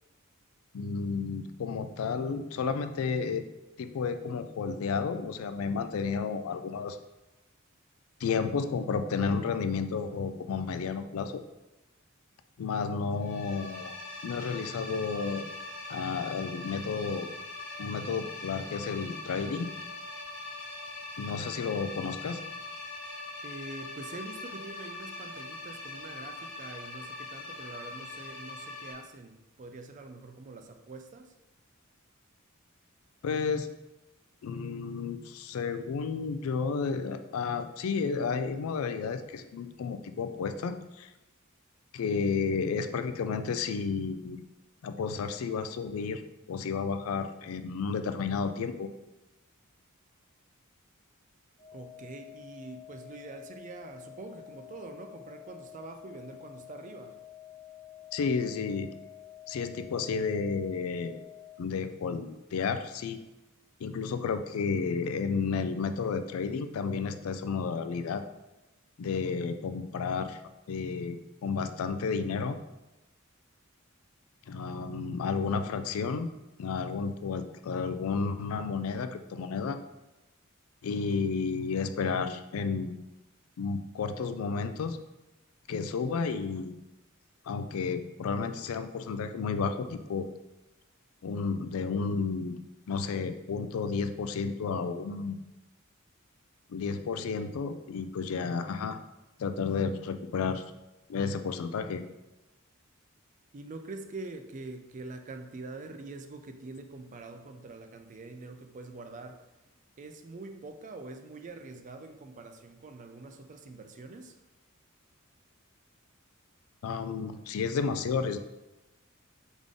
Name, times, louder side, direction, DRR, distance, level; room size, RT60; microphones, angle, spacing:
voice 1, 0.7-3.4 3.8-7.0 8.2-11.4 12.6-13.9 14.2-15.4 15.9-17.3 17.8-19.7 21.2-22.4 33.2-33.7 34.4-41.1 41.9-44.4 44.8-46.2 46.5-48.9 58.1-58.9 59.5-61.2 61.6-63.2 63.8-68.2 69.0-70.4 70.7-72.6 74.5-76.3 76.6-79.8 80.8-83.0 83.6-85.0 85.7-86.7 87.5-90.3 91.2-92.6 92.9-95.4 96.7-99.0 99.4-100.6 101.1-102.0 116.8-118.4, left 5 dB, 75° left, 10 dB, 0.4 m, -32 dB
sound 1, 13.2-28.9, left 2 dB, 60° left, 1.1 m, -42 dB
voice 2, 23.4-31.3 51.7-57.2 103.5-109.5 110.0-114.4, right 3 dB, 35° right, 6 dB, 0.4 m, -45 dB
sound 2, 51.6-61.6, left 12 dB, 35° left, 0.6 m, -49 dB
3.6 x 3.6 x 3.6 m, 0.98 s
head